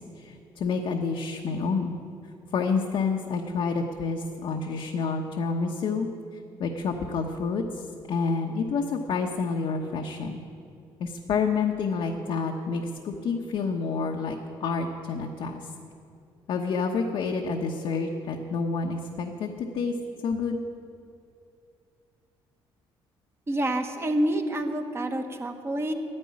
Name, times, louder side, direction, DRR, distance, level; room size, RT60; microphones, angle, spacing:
voice 1, 0.0-2.0 2.5-6.1 6.6-7.8 8.1-10.4 11.0-15.6 16.5-19.9 20.2-20.6, left 4 dB, 65° left, 1 dB, 1.1 m, -28 dB
voice 2, 23.5-25.9, right 1 dB, 25° right, 5 dB, 1.4 m, -27 dB
11.5 x 9.9 x 9.7 m, 2.5 s
cardioid pair, 105°, 10 cm